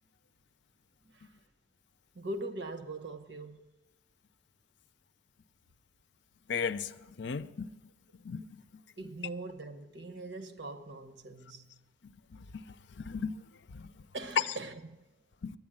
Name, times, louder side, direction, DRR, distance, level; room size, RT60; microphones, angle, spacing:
voice 1, 2.1-3.7 9.0-11.8 14.1-15.1, right 2 dB, 65° right, 1.0 m, -42 dB
voice 2, 6.5-6.9 7.2-7.7 8.2-8.4 12.3-12.6 13.1-13.4 13.7-13.9 15.4-15.5, left 5 dB, 65° left, 0.5 m, -35 dB
11.0 x 9.5 x 8.7 m
head